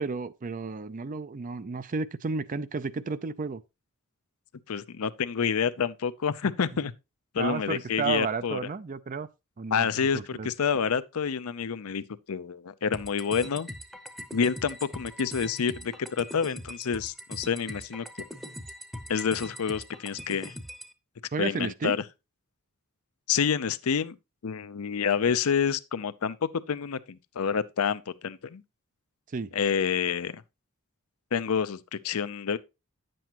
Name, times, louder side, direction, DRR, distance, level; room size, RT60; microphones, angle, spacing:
voice 1, 0.0-3.6 7.4-9.3 9.6-9.9 10.1-10.5 21.3-22.0 29.3-29.5, right 4 dB, 35° right, 0.4 m, -32 dB
voice 2, 4.7-6.9 7.3-8.6 9.7-13.7 14.3-18.1 19.1-20.5 21.4-22.0 23.3-24.1 24.4-28.6 29.5-30.4 31.3-32.6, left 6 dB, 70° left, 0.5 m, -28 dB
sound 1, 12.9-20.9, equal, ahead, 0.8 m, -41 dB
10.0 x 7.7 x 2.9 m
head